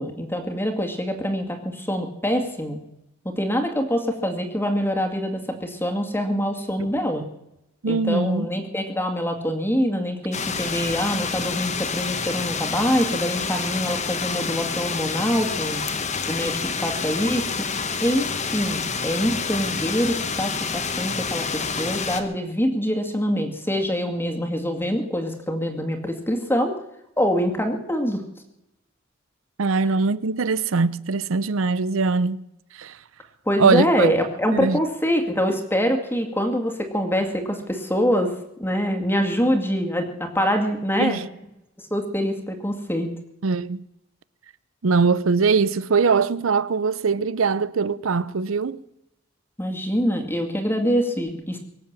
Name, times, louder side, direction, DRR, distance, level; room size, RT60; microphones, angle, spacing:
voice 1, 0.0-2.8 3.2-7.2 7.9-15.8 16.3-17.7 18.0-26.7 27.2-28.2 33.5-38.3 38.6-41.2 41.8-43.1 49.6-51.6, equal, 10° left, 2.2 m, -24 dB
voice 2, 7.8-8.5 29.6-32.4 32.7-33.0 33.6-34.1 34.5-34.8 41.0-41.3 43.4-43.8 44.8-48.8, right 4 dB, 90° right, 0.6 m, -21 dB
sound 1, 10.3-22.2, left 5 dB, 35° left, 1.3 m, -28 dB
23.5 x 7.8 x 7.4 m
head